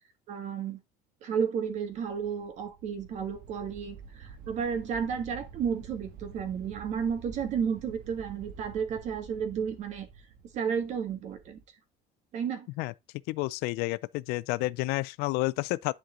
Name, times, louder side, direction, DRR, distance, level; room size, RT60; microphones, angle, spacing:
voice 1, 0.3-0.8 1.2-10.1 10.5-11.6 12.3-12.7, right 7 dB, 45° right, 1.8 m, -32 dB
sound 1, 1.7-11.6, right 6 dB, 65° right, 1.5 m, -49 dB
voice 2, 13.3-15.9, left 21 dB, 75° left, 0.5 m, -30 dB
11.0 x 4.5 x 3.8 m
cardioid pair, 175°, 17 cm